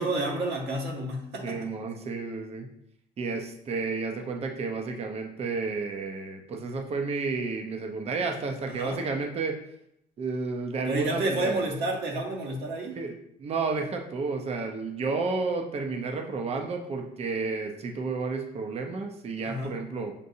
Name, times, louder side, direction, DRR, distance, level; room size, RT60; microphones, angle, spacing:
voice 1, 0.0-1.7 8.7-9.0 10.9-13.0 19.4-19.8, right 1 dB, 70° right, 0 dB, 1.1 m, -30 dB
voice 2, 1.4-2.7 3.2-9.6 10.2-11.5 13.0-13.1 13.4-20.1, right 4 dB, 35° right, 4 dB, 0.6 m, -31 dB
6.7 x 2.6 x 2.7 m, 0.76 s
cardioid pair, 110°, 17 cm